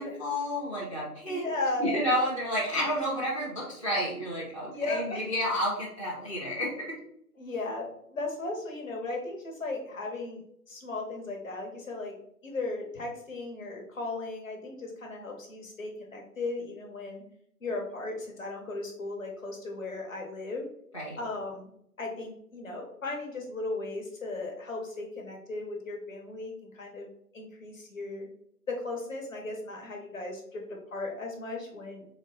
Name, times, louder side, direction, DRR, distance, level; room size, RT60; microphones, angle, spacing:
voice 1, 0.0-1.5 1.8-6.9 20.9-21.2, equal, 20° left, -9 dB, 0.6 m, -30 dB
voice 2, 1.3-2.0 2.7-2.9 4.7-5.3 7.4-10.4 10.7-12.1 12.4-17.2 17.6-20.6 21.2-21.7 22.0-27.1 27.3-28.3 28.7-32.1, left 2 dB, 55° left, 1 dB, 1.1 m, -36 dB
3.9 x 2.0 x 4.0 m, 0.70 s
figure-of-eight pair, 150°, 47 cm